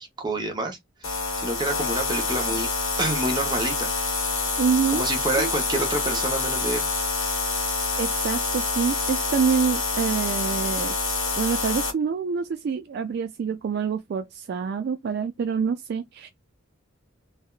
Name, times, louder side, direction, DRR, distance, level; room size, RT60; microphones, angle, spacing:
voice 1, 0.0-2.7 3.0-3.9 4.9-6.9, right 2 dB, 20° right, 0.8 m, -28 dB
sound 1, 1.0-11.9, left 4 dB, 90° left, 1.3 m, -27 dB
voice 2, 4.6-5.1 5.4-5.5 8.0-10.9 11.4-16.3, right 6 dB, 55° right, 0.3 m, -26 dB
3.3 x 2.2 x 2.3 m
head